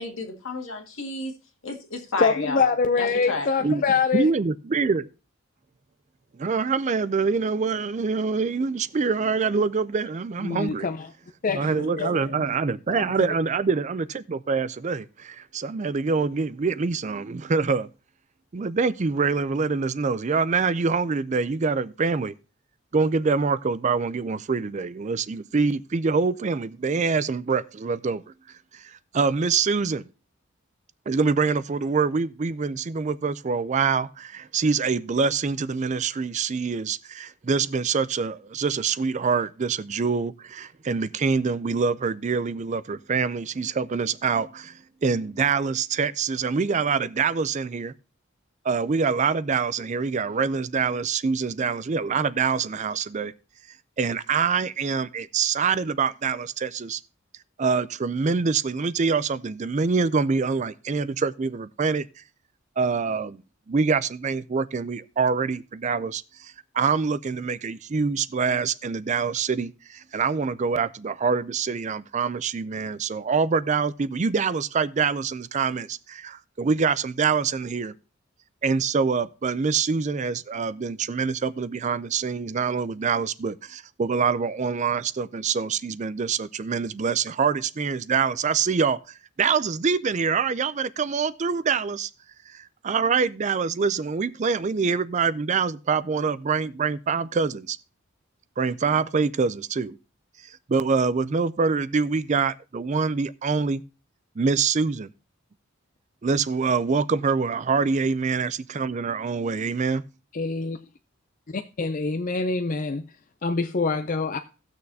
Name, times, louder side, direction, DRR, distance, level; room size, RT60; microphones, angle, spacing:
voice 1, 0.0-1.3 1.6-2.7 3.0-3.5, left 3 dB, 75° left, 1.9 m, -31 dB
voice 2, 2.2-4.3 10.4-11.1 11.4-12.2 12.9-13.0 110.3-110.8 111.8-113.0 113.4-114.4, left 4 dB, 40° left, 0.5 m, -24 dB
voice 3, 4.1-5.1 6.3-10.9 11.5-17.9 18.5-22.3 22.9-28.3 28.7-30.1 31.1-47.9 48.6-53.3 54.0-57.0 57.6-62.2 62.8-63.4 63.7-77.9 78.6-92.1 92.5-97.8 98.6-100.0 100.4-103.8 104.4-105.1 106.2-110.0, right 5 dB, 35° right, 0.4 m, -25 dB
17.0 x 6.5 x 2.7 m
head